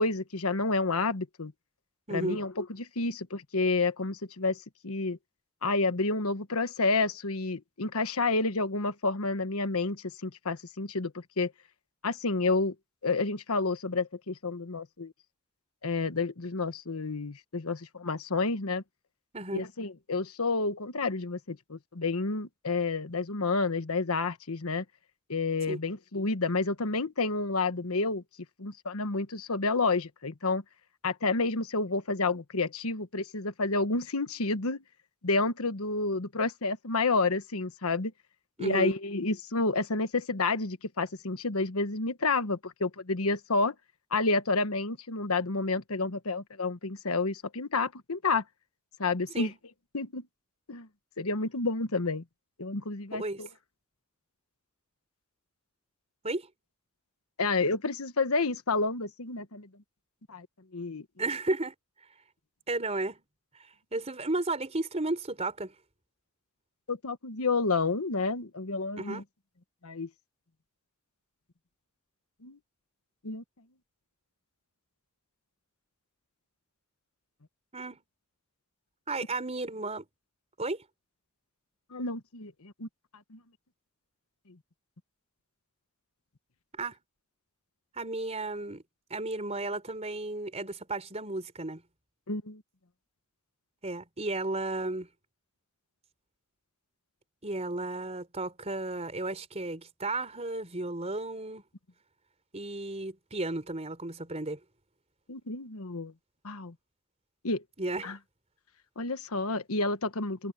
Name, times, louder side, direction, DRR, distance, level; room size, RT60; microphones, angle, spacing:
voice 1, 0.0-1.5 2.1-5.2 5.6-11.5 12.0-12.7 13.0-15.1 15.8-18.8 19.5-24.8 25.3-28.2 28.6-30.6 31.0-34.8 35.2-38.1 38.6-43.7 44.1-48.4 49.0-49.5 49.9-50.2 50.7-50.9 51.2-52.2 52.6-53.5 57.4-59.7 60.3-60.5 60.7-61.0 66.9-69.2 69.8-70.1 72.4-72.6 73.2-73.4 81.9-82.9 83.3-83.4 92.3-92.6 105.3-106.1 106.4-106.7 107.4-107.6 108.0-108.2 109.0-110.5, left 3 dB, 80° left, 1.3 m, -30 dB
voice 2, 2.1-2.4 19.3-19.7 25.7-25.8 38.6-38.9 49.3-49.5 53.1-53.4 56.2-56.5 61.2-61.7 62.7-63.2 63.9-65.7 69.0-69.2 77.7-78.0 79.1-80.0 80.6-80.8 86.8-87.0 88.0-88.8 89.1-91.8 93.8-95.1 97.4-101.6 102.5-104.6 107.8-108.1, right 2 dB, 30° right, 4.0 m, -33 dB
head